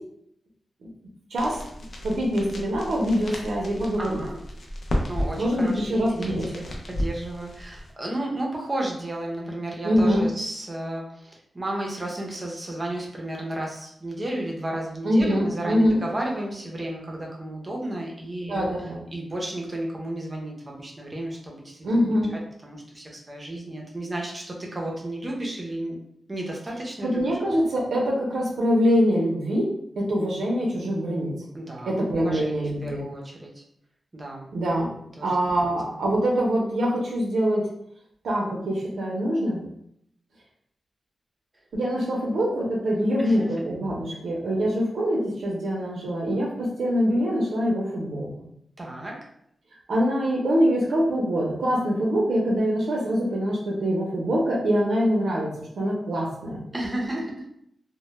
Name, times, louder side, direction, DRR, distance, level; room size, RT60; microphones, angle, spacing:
sound 1, 1.4-7.9, equal, 50° left, 0.4 m, -33 dB
voice 1, 2.0-4.2 5.4-6.5 9.8-10.3 15.0-16.0 18.5-19.0 21.8-22.3 27.0-29.7 30.0-31.3 31.9-33.1 34.5-34.9 35.2-37.7 38.2-39.7 41.7-48.3 49.9-56.6, equal, 90° right, -3 dB, 0.5 m, -24 dB
voice 2, 4.0-4.4 5.1-18.6 19.1-22.2 22.6-26.0 26.3-27.4 31.5-33.6 34.1-34.5 35.2-36.0 43.2-43.5 48.8-49.2 56.7-57.5, right 1 dB, 20° right, -1 dB, 0.5 m, -33 dB
2.1 x 2.0 x 3.0 m, 0.73 s
wide cardioid pair, 175°, 0 cm